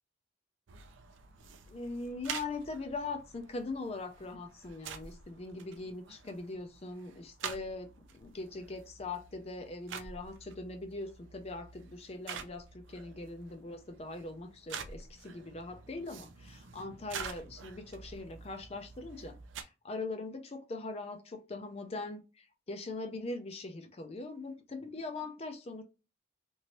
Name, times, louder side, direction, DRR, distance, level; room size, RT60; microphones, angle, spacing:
sound 1, 0.7-19.6, right 6 dB, 85° right, 0.5 m, -47 dB
voice 1, 1.7-25.8, left 3 dB, 35° left, 0.4 m, -41 dB
3.0 x 2.6 x 2.9 m
head